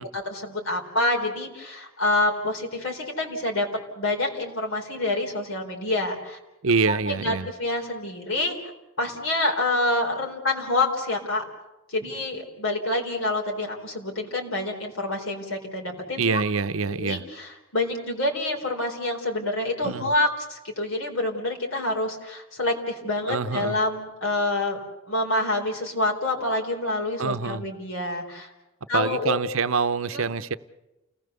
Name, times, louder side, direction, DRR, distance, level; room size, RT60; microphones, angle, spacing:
voice 1, 0.0-3.7 4.0-6.4 6.9-8.6 9.0-11.4 11.9-16.2 16.9-24.8 25.1-28.5 28.9-29.4 30.1-30.3, left 2 dB, 70° left, 4.1 m, -27 dB
voice 2, 6.6-7.5 16.2-17.2 19.8-20.1 23.3-23.8 27.2-27.6 28.9-30.6, right 4 dB, 70° right, 0.8 m, -25 dB
29.5 x 18.5 x 6.9 m
head